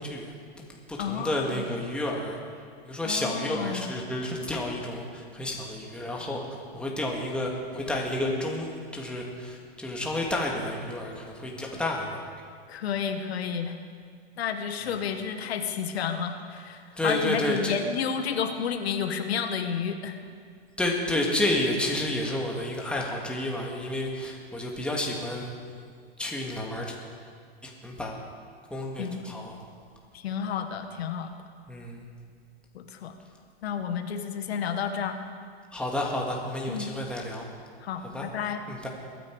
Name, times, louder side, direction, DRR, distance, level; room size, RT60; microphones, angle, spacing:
voice 1, 0.0-2.4 2.8-6.4 6.7-12.2 14.8-15.0 17.0-17.8 20.8-25.6 26.2-27.0 27.6-28.2 28.7-29.6 31.7-32.1 35.7-37.5 38.0-38.3 38.7-38.9, left 1 dB, 5° left, -2 dB, 1.9 m, -30 dB
voice 2, 1.0-1.7 3.0-3.9 12.7-13.8 14.4-20.2 29.0-29.2 30.1-31.3 32.7-33.1 33.6-35.2 36.7-36.9 37.8-38.6, left 7 dB, 85° left, 7 dB, 1.3 m, -31 dB
21.5 x 9.9 x 4.7 m, 2.1 s
hypercardioid pair, 130°, 31 cm